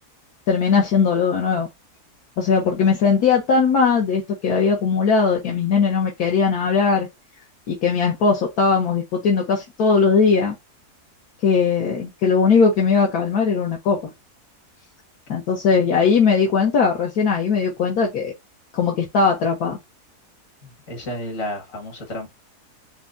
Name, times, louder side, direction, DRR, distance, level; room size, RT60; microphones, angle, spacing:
voice 1, 0.5-1.7 2.4-7.1 7.7-10.5 11.4-14.0 15.3-18.3 18.7-19.8, left 5 dB, 70° left, 1.5 m, -19 dB
voice 2, 20.6-22.3, left 1 dB, 55° left, 2.0 m, -31 dB
5.8 x 2.3 x 2.5 m
omnidirectional pair, 1.7 m